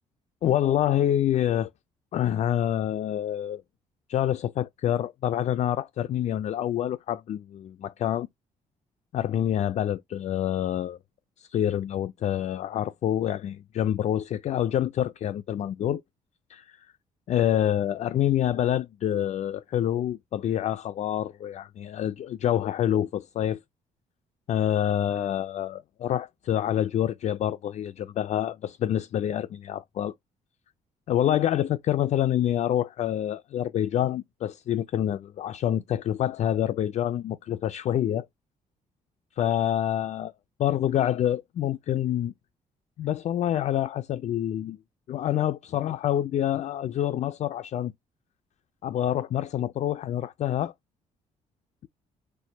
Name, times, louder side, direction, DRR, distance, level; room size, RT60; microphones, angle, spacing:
voice 1, 0.4-1.7 2.1-3.6 4.1-8.3 9.1-11.0 11.4-16.0 16.5-16.8 17.3-23.6 24.5-30.1 31.1-38.3 39.4-40.3 40.6-42.3 43.0-44.8 45.1-47.9 48.8-50.7, left 11 dB, 55° left, 0.4 m, -27 dB
4.4 x 2.2 x 3.9 m
cardioid pair, 85°, 14 cm